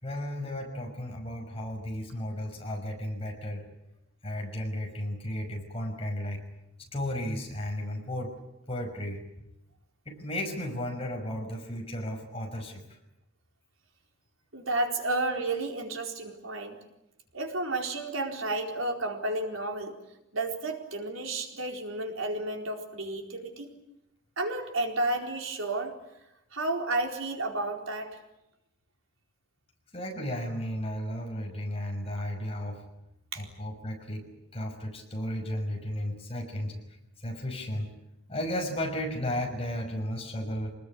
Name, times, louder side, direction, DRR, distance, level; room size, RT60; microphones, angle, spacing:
voice 1, 0.0-3.6 4.2-6.4 6.9-8.3 8.7-9.4 10.1-12.8 29.9-32.8 33.4-34.3 34.5-36.8 37.2-37.9 38.3-40.7, left 1 dB, 30° left, 2 dB, 5.8 m, -34 dB
voice 2, 14.5-16.8 17.3-20.0 20.3-23.7 24.4-25.9 26.5-28.2 33.3-33.4, right 2 dB, 85° right, 3 dB, 4.3 m, -31 dB
26.0 x 20.0 x 10.0 m, 0.88 s
head